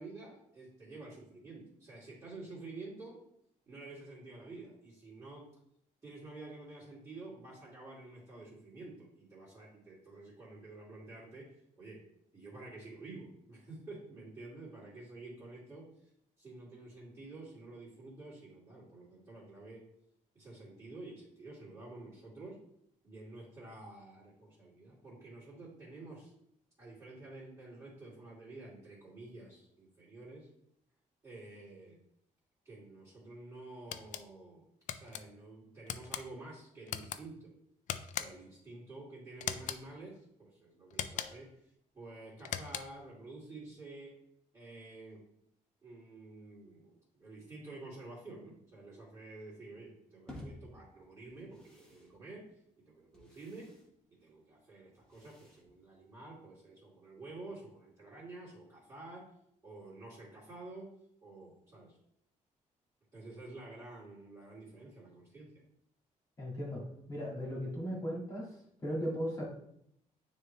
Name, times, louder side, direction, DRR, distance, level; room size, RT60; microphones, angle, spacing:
voice 1, 0.0-3.2 3.6-5.5 6.0-12.0 12.3-16.1 16.4-19.8 20.3-22.6 23.0-26.3 26.8-30.5 31.2-32.0 32.6-34.7 34.9-37.5 38.2-44.1 44.5-45.2 45.8-52.5 52.8-53.7 54.1-59.3 59.6-60.9 61.2-62.0 63.1-65.5, right 2 dB, 25° right, -9 dB, 2.6 m, -50 dB
sound 1, 33.9-34.2 34.9-35.2 35.9-36.2 36.9-37.2 37.9-38.5 39.4-39.8 40.9-41.5 42.4-43.0, left 9 dB, 65° left, 0.4 m, -39 dB
sound 2, 50.3-56.5, left 1 dB, 5° left, 1.4 m, -55 dB
voice 2, 66.4-66.8 67.1-68.5 68.8-69.4, equal, 25° left, -4 dB, 2.0 m, -36 dB
9.4 x 3.1 x 3.2 m, 0.73 s
cardioid pair, 155°, 14 cm